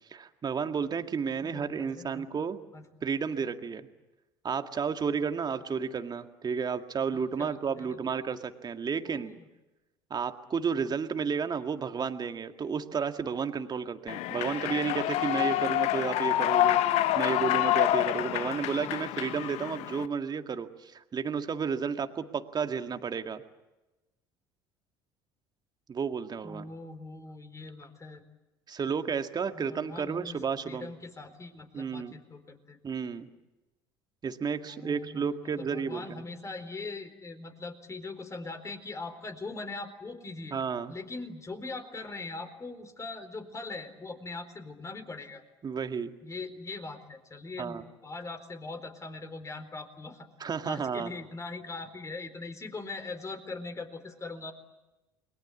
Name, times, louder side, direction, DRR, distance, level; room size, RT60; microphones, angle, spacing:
voice 1, 0.1-2.6 3.0-3.9 4.4-9.3 10.1-23.4 25.9-26.7 28.7-30.9 31.7-32.1 32.8-33.3 34.2-36.2 40.5-40.9 45.6-46.1 47.6-47.8 50.4-51.1, right 6 dB, 35° right, 7 dB, 2.0 m, -32 dB
voice 2, 1.4-2.3 2.7-2.9 7.1-8.0 9.0-9.5 26.4-28.2 28.9-29.0 29.5-32.8 34.6-40.6 40.9-45.4 46.2-50.3 50.6-54.5, left 3 dB, 25° left, 8 dB, 4.1 m, -41 dB
Human voice / Clapping / Cheering, 14.1-20.1, left 14 dB, 60° left, 1.0 m, -27 dB
30.0 x 22.0 x 8.5 m, 1.0 s
hypercardioid pair, 60°, 13 cm